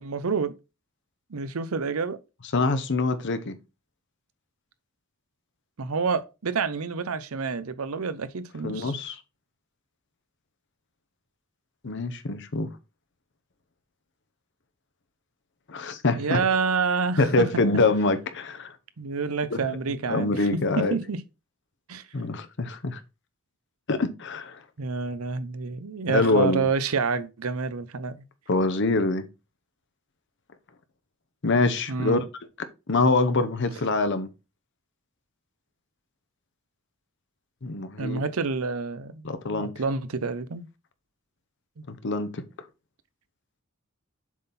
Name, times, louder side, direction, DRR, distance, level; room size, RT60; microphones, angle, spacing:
voice 1, 0.0-0.5 1.3-2.2 5.8-8.9 16.2-17.5 19.0-21.2 21.9-22.0 24.8-28.2 31.9-32.2 38.0-40.7 41.8-41.9, right 5 dB, 80° right, 0.7 m, -28 dB
voice 2, 2.5-3.6 8.6-9.2 11.8-12.7 15.7-16.4 17.2-18.7 19.5-19.6 20.1-21.0 22.1-23.0 23.9-24.6 26.1-26.7 28.5-29.2 31.4-32.3 32.9-34.3 37.6-38.2 39.2-39.7 41.9-42.4, left 3 dB, 55° left, 0.8 m, -25 dB
7.3 x 3.9 x 4.1 m
head